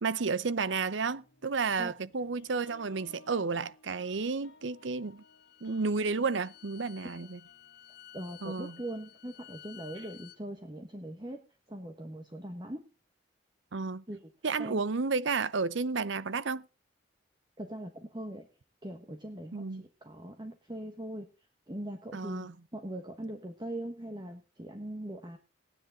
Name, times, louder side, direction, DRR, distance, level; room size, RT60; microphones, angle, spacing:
voice 1, 0.0-5.2 5.6-7.4 8.4-8.8 13.7-14.0 14.4-16.7 19.5-19.8 22.1-22.5, right 4 dB, 70° right, 0.7 m, -32 dB
sound 1, 1.0-9.4, left 3 dB, 70° left, 2.7 m, -60 dB
Bowed string instrument, 5.0-10.4, left 11 dB, 55° left, 1.1 m, -54 dB
voice 2, 8.1-12.9 14.1-14.3 14.6-14.8 17.6-18.5 18.8-21.3 21.7-25.4, right 1 dB, 20° right, 1.4 m, -41 dB
18.5 x 10.0 x 3.8 m
head